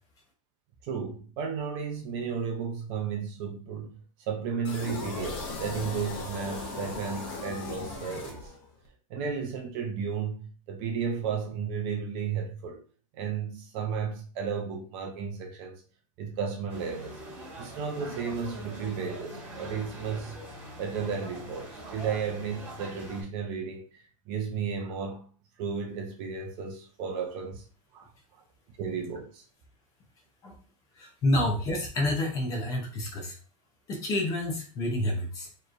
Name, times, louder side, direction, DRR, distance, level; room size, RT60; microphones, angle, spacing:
voice 1, 0.8-8.5 9.1-12.8 13.1-15.8 16.2-17.2 17.6-20.4 20.8-25.3 25.6-27.6 27.9-28.1 28.8-29.4, right 6 dB, 30° right, 0.6 m, -33 dB
sound 1, 4.6-8.9, left 3 dB, 45° left, 1.0 m, -37 dB
sound 2, 16.7-23.2, right 1 dB, 10° right, 1.1 m, -43 dB
voice 2, 31.0-33.3 33.9-35.5, left 1 dB, 20° left, 0.7 m, -29 dB
4.6 x 3.1 x 2.5 m
supercardioid pair, 180°, 17 cm